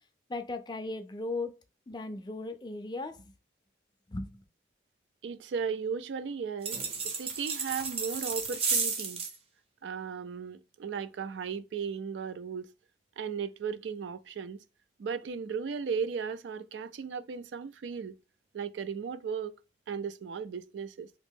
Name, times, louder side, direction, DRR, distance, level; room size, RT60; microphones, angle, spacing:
voice 1, 0.3-1.5 1.9-3.2 4.1-4.4, left 2 dB, 25° left, 0.4 m, -37 dB
voice 2, 5.2-9.3 9.8-12.7 13.2-14.6 15.0-18.2 18.5-19.5 19.9-21.1, right 6 dB, 75° right, 0.3 m, -36 dB
sound 1, 6.6-9.3, right 5 dB, 30° right, 0.6 m, -32 dB
3.0 x 2.5 x 3.4 m
head